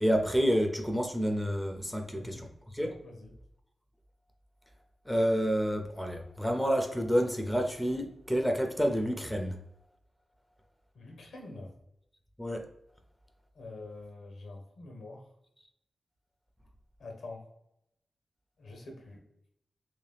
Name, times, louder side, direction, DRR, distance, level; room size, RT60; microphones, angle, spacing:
voice 1, 0.0-2.4 2.7-2.9 5.1-9.6 12.4-12.7, equal, ahead, 4 dB, 0.6 m, -29 dB
voice 2, 2.1-2.5 3.0-3.3 10.9-11.7 13.5-15.3 17.0-17.4 18.6-19.2, left 2 dB, 85° left, 2 dB, 0.9 m, -45 dB
3.2 x 2.8 x 3.3 m, 0.79 s
cardioid pair, 65°, 0 cm